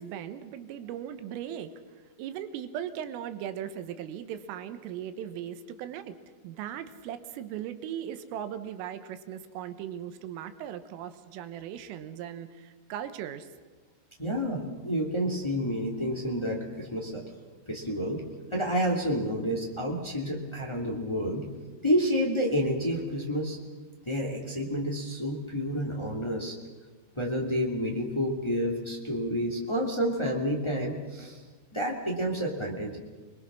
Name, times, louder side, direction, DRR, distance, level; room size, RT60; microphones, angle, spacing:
voice 1, 0.0-1.7 2.2-6.2 6.4-13.5, right 10 dB, 80° right, 10 dB, 3.6 m, -38 dB
voice 2, 14.2-17.2 17.7-18.2 18.5-21.4 21.8-23.6 24.0-26.5 27.1-31.4 31.7-33.0, equal, 50° left, 0 dB, 0.3 m, -29 dB
27.5 x 22.0 x 6.2 m, 1.3 s
omnidirectional pair, 5.9 m